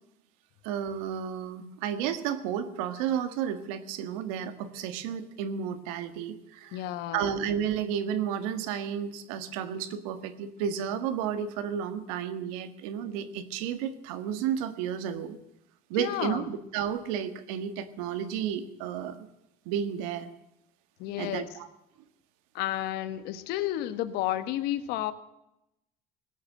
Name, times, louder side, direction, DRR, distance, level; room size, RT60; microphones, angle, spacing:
voice 1, 0.6-6.8 7.1-15.4 15.9-19.3 19.7-20.3 21.2-21.4, right 8 dB, 90° right, 11 dB, 1.6 m, -32 dB
voice 2, 6.7-7.3 16.0-16.5 21.0-21.5 22.5-25.1, left 13 dB, 70° left, 12 dB, 1.3 m, -31 dB
19.0 x 8.7 x 7.5 m, 0.87 s
cardioid pair, 130°, 17 cm